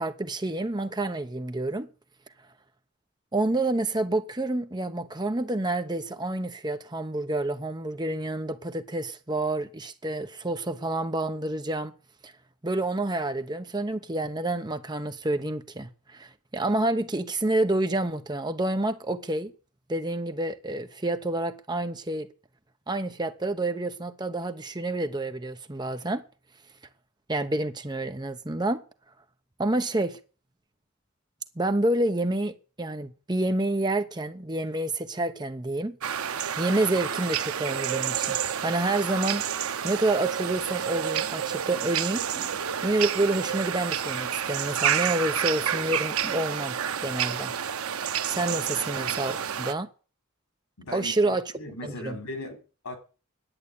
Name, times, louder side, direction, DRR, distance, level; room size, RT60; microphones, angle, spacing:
voice 1, 0.0-1.9 3.3-11.9 12.2-12.3 12.6-19.5 19.9-22.3 22.9-26.2 27.3-28.8 29.6-30.2 31.6-36.0 36.6-38.4 38.6-39.4 39.8-42.2 42.8-46.8 47.0-47.5 48.3-49.9 50.9-51.4 51.8-52.1, right 2 dB, 20° right, 0.9 m, -28 dB
sound 1, 36.0-49.7, right 9 dB, 85° right, 0.8 m, -29 dB
sound 2, 42.3-43.2 46.2-47.1, equal, 20° left, 4.1 m, -48 dB
voice 2, 50.8-53.0, left 1 dB, 90° left, 3.6 m, -39 dB
11.0 x 8.5 x 8.5 m
head